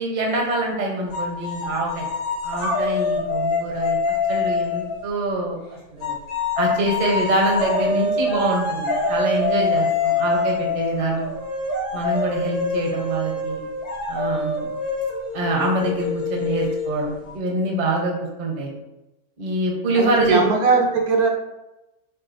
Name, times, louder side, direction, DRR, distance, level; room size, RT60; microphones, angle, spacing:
voice 1, 0.0-2.1 2.4-4.0 4.3-6.2 6.6-11.3 11.9-13.6 14.1-14.7 15.3-18.7 19.4-20.4, right 2 dB, 40° right, 0 dB, 0.7 m, -25 dB
sound 1, 1.1-5.0 6.0-17.3, left 3 dB, 80° left, 1.6 m, -25 dB
voice 2, 20.0-21.3, right 4 dB, 75° right, 1 dB, 1.2 m, -19 dB
6.3 x 2.4 x 2.6 m, 0.98 s
omnidirectional pair, 1.6 m